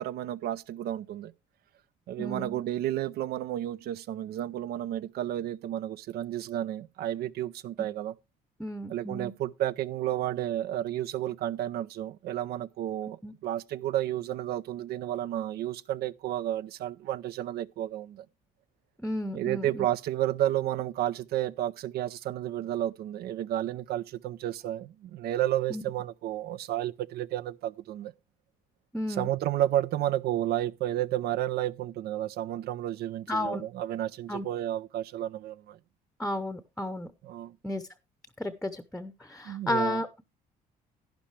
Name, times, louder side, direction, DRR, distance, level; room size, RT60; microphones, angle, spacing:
voice 1, 0.0-1.3 2.1-8.1 8.9-18.3 19.3-28.1 29.1-35.8 37.2-37.6 39.4-40.0, right 13 dB, 70° right, 0.6 m, -31 dB
voice 2, 2.2-2.6 7.8-7.9 8.6-9.3 13.2-13.3 19.0-19.9 25.7-25.8 28.9-29.3 33.3-33.6 34.3-34.5 36.2-37.1 37.6-37.8 38.4-40.2, left 1 dB, 5° left, 0.8 m, -33 dB
11.5 x 10.5 x 3.2 m
cardioid pair, 110°, 17 cm